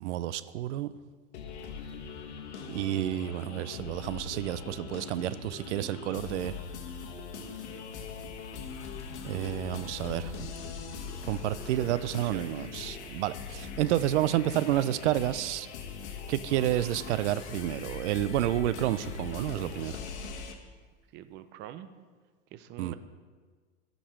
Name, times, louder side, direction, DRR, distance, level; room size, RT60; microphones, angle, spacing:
voice 1, 0.0-0.9 2.7-6.5 9.2-10.3 11.3-15.7 16.3-20.0 22.8-22.9, right 13 dB, 85° right, 15 dB, 0.5 m, -30 dB
sound 1, 1.3-20.5, left 5 dB, 75° left, 1.2 m, -41 dB
voice 2, 11.8-12.7 21.1-21.9 22.5-22.9, right 11 dB, 30° right, 11 dB, 0.5 m, -45 dB
8.7 x 5.3 x 6.3 m, 1.5 s
supercardioid pair, 130°, 34 cm